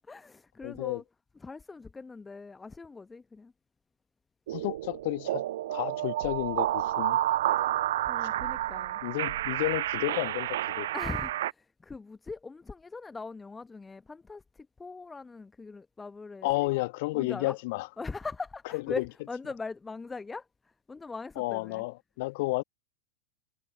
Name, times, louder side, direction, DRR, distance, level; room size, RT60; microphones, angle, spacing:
voice 1, 0.1-1.0 1.4-3.5 8.1-9.0 10.9-16.7 17.1-17.6 18.0-21.8, left 4 dB, 10° left, 0.9 m, -41 dB
voice 2, 0.6-1.0 4.5-5.4 5.7-7.2 9.0-10.9 16.4-17.9 18.7-19.0 21.4-22.6, left 23 dB, 50° left, 1.3 m, -31 dB
sound 1, 4.5-11.5, right 14 dB, 55° right, 0.3 m, -30 dB
figure-of-eight pair, 90°, 0 cm